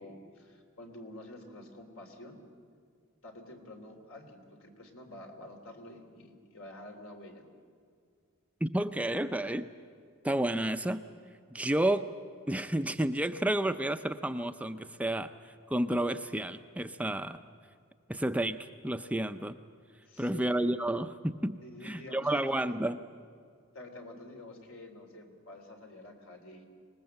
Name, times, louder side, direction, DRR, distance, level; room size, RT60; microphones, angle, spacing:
voice 1, 0.0-2.4 3.2-7.5 20.1-20.6 21.6-22.7 23.7-26.7, left 1 dB, 75° left, 4 dB, 3.5 m, -48 dB
voice 2, 8.6-9.7 10.2-11.0 11.5-12.1 12.5-15.3 15.7-17.4 18.1-19.6 20.2-23.0, right 1 dB, 5° right, 9 dB, 0.5 m, -31 dB
26.0 x 20.0 x 7.8 m, 2.2 s
head